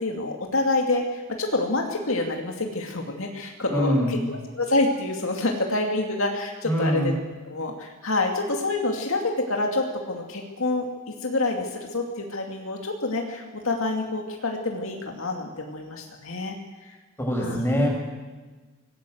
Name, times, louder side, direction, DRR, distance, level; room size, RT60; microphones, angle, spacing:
voice 1, 0.0-7.1 7.5-10.9 11.2-16.6 16.9-17.0 17.4-17.6, left 2 dB, 65° left, 2 dB, 2.5 m, -27 dB
voice 2, 3.7-4.2 6.6-7.1 17.2-17.9, equal, 10° left, 0 dB, 6.5 m, -23 dB
25.5 x 19.5 x 7.9 m, 1.3 s
head